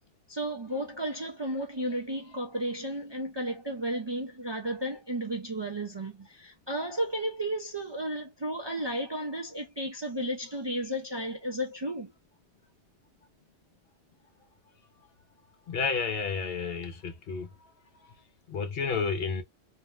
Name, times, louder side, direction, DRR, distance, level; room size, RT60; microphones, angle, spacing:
voice 1, 0.3-12.1, right 1 dB, 35° right, 0.4 m, -33 dB
voice 2, 15.7-17.5 18.5-19.4, left 5 dB, 65° left, 0.8 m, -31 dB
2.6 x 2.1 x 3.1 m
omnidirectional pair, 1.1 m